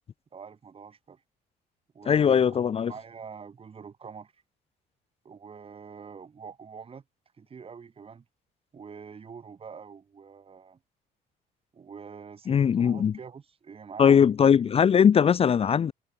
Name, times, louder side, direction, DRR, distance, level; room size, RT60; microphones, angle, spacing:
voice 1, 0.3-1.2 1.9-4.4 5.2-7.0 7.4-8.2 8.7-10.8 11.7-14.7, right 6 dB, 35° right, 6.6 m, -45 dB
voice 2, 2.1-2.9 12.5-13.1 14.0-15.9, left 7 dB, 35° left, 0.7 m, -20 dB
cardioid pair, 110°, 17 cm